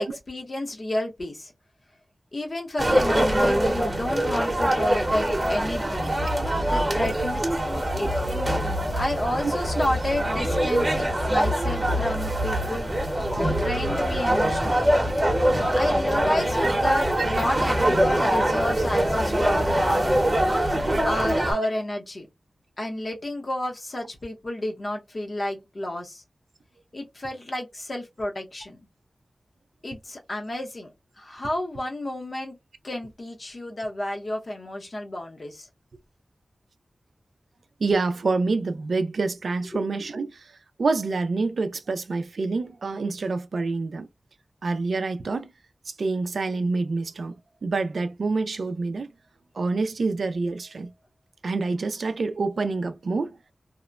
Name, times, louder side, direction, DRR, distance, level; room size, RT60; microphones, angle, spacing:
voice 1, 0.0-1.5 2.3-6.1 6.7-7.4 8.0-8.1 9.0-12.9 13.3-14.9 15.7-20.0 21.0-22.3 22.8-26.2 26.9-28.8 29.8-30.9 31.2-32.6 32.8-35.7 39.7-39.9, left 1 dB, 45° left, 0.8 m, -31 dB
sound 1, 2.8-21.5, right 1 dB, 25° right, 0.8 m, -23 dB
voice 2, 5.8-6.1 6.5-7.1 16.6-16.7 17.2-17.3 21.4-21.7 37.8-40.5 40.8-44.1 44.6-45.5 45.9-47.3 47.6-49.1 49.5-50.9 51.4-53.3, right 3 dB, 80° right, 0.3 m, -27 dB
2.8 x 2.1 x 2.3 m
wide cardioid pair, 85°, 0 cm